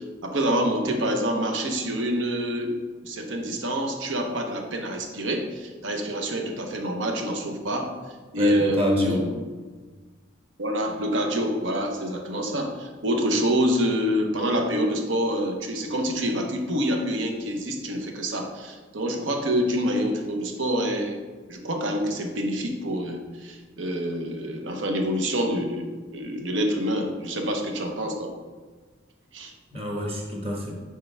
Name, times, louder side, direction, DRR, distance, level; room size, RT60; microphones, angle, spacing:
voice 1, 0.0-2.7 3.0-7.9 8.3-9.4 10.6-21.2 21.5-25.9 26.1-28.3 29.3-29.5, equal, 85° right, 3 dB, 0.9 m, -26 dB
voice 2, 8.4-9.3 29.7-30.7, equal, 35° right, -1 dB, 1.3 m, -28 dB
6.6 x 4.6 x 3.4 m, 1.3 s
head